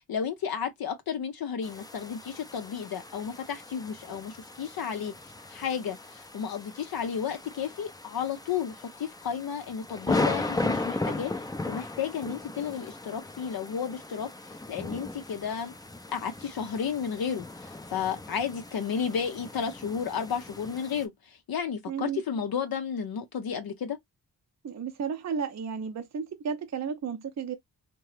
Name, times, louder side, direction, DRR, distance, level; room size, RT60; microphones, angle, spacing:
voice 1, 0.1-5.1 5.5-15.7 16.1-24.0, left 7 dB, 65° left, 0.6 m, -33 dB
sound 1, 1.6-21.0, left 2 dB, 10° left, 0.5 m, -37 dB
voice 2, 21.9-22.2 24.6-27.5, right 6 dB, 45° right, 0.6 m, -33 dB
2.8 x 2.2 x 3.1 m
cardioid pair, 70°, 40 cm